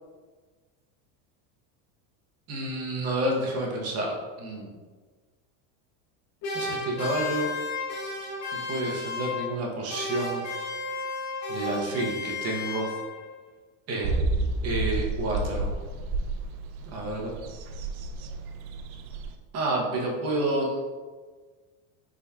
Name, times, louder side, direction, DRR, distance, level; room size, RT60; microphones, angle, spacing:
voice 1, 2.5-4.1 4.4-4.7 6.5-7.5 8.7-10.4 11.5-12.9 13.9-15.7 16.9-17.3 19.5-20.7, right 1 dB, 35° right, -2 dB, 0.8 m, -29 dB
sound 1, 6.4-9.6 9.9-13.3, left 3 dB, 50° left, 1.1 m, -33 dB
sound 2, 14.0-19.3, right 2 dB, 85° right, 0.5 m, -30 dB
3.9 x 3.6 x 2.3 m, 1.4 s
supercardioid pair, 130°, 43 cm